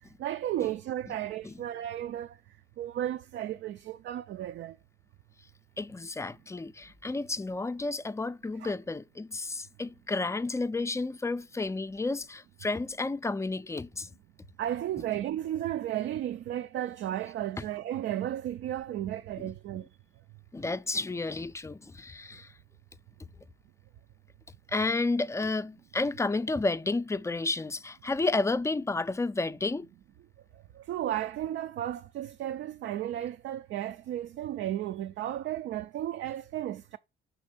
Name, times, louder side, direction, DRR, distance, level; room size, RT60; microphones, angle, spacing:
voice 1, 0.2-2.4 2.8-4.8 8.6-8.7 14.6-19.9 30.8-37.0, right 12 dB, 70° right, 0.4 m, -34 dB
voice 2, 5.8-14.1 17.6-17.7 19.4-19.5 20.5-22.5 23.2-23.3 24.7-29.9, left 3 dB, 15° left, 0.4 m, -31 dB
6.2 x 3.3 x 5.2 m
cardioid pair, 90°, 20 cm